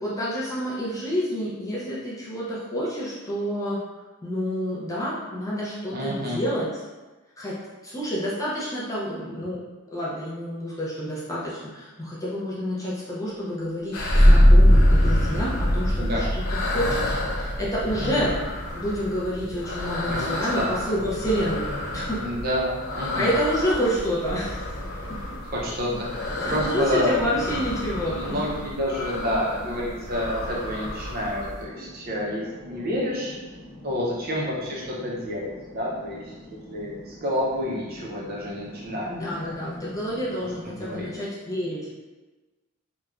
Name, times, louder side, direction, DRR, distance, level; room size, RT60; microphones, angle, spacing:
voice 1, 0.0-3.8 4.2-6.7 7.4-9.6 9.9-16.4 16.7-18.3 18.7-22.2 23.1-24.7 26.4-28.4 39.1-41.9, equal, 15° left, -7 dB, 0.4 m, -28 dB
voice 2, 5.9-6.4 16.0-16.3 18.0-18.3 20.1-21.0 22.2-23.3 25.4-27.2 28.1-33.3 33.8-36.2 36.5-39.1 40.6-41.1, equal, 45° right, -4 dB, 0.5 m, -29 dB
sound 1, 13.9-31.6, left 1 dB, 85° left, 0.6 m, -32 dB
sound 2, 14.1-25.3, equal, 65° left, 0.9 m, -22 dB
sound 3, 26.2-41.2, left 1 dB, 40° left, 0.9 m, -44 dB
3.0 x 2.2 x 2.4 m, 1.2 s
head